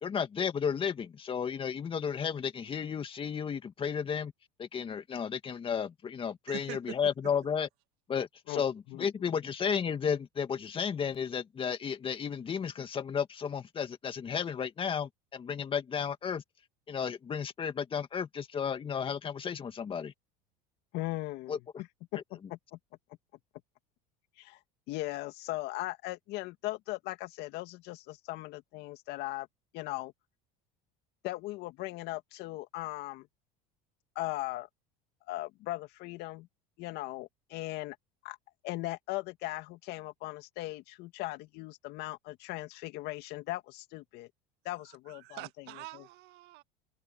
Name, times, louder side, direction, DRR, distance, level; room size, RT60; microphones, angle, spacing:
voice 1, 0.0-4.3 4.6-7.7 8.1-16.4 16.9-20.1 21.5-21.6 22.1-22.2, left 7 dB, 30° left, 2.2 m, -33 dB
voice 2, 6.5-7.0 45.1-46.6, right 19 dB, 65° right, 1.9 m, -44 dB
voice 3, 8.9-9.4 20.9-21.6 22.1-22.8 24.4-24.6 24.9-29.5 29.7-30.1 31.2-33.3 34.2-34.7 35.3-36.5 36.8-38.0 38.2-38.4 38.6-44.3 44.6-45.4 45.9-46.0, left 19 dB, 60° left, 2.2 m, -38 dB
supercardioid pair, 110°, 19 cm